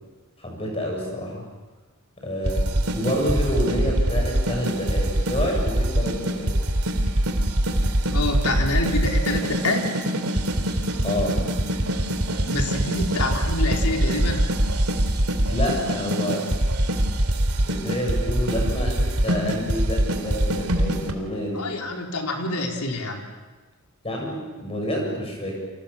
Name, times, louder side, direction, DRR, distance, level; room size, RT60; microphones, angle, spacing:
voice 1, 0.4-1.5 2.2-6.6 11.0-11.4 15.5-16.5 17.6-21.7 24.0-25.6, equal, 25° left, 0 dB, 7.9 m, -28 dB
sound 1, 2.4-21.1, right 1 dB, 80° right, 3.0 m, -23 dB
voice 2, 8.1-9.9 12.4-14.4 21.5-23.2, left 2 dB, 90° left, 2 dB, 4.2 m, -27 dB
29.5 x 25.5 x 7.4 m, 1.3 s
head